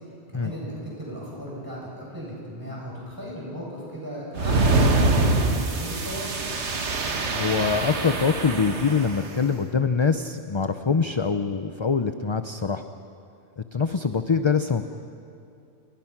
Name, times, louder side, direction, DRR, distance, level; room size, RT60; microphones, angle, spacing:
voice 1, 0.3-5.1 5.4-6.2, equal, 15° right, -5 dB, 7.9 m, -36 dB
sound 1, 4.3-9.3, right 2 dB, 70° right, 1.8 m, -24 dB
voice 2, 7.3-12.8 13.6-14.8, left 5 dB, 30° left, 9 dB, 0.6 m, -24 dB
29.5 x 21.0 x 6.0 m, 2.5 s
omnidirectional pair, 1.2 m